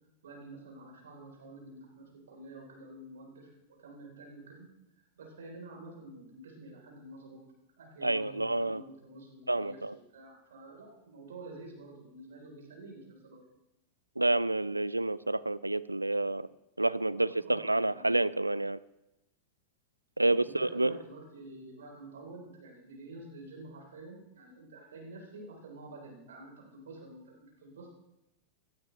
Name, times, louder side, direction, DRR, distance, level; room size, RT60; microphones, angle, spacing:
voice 1, 0.2-3.5 3.8-4.7 5.2-7.4 7.8-13.4 17.1-18.1 20.2-27.9, right 2 dB, 65° right, -1 dB, 4.3 m, -49 dB
voice 2, 8.0-8.8 9.5-10.0 14.2-16.5 16.8-18.8 20.2-21.0, right 2 dB, 85° right, 17 dB, 0.4 m, -29 dB
17.5 x 12.0 x 3.4 m, 0.88 s
figure-of-eight pair, 90°, 0 cm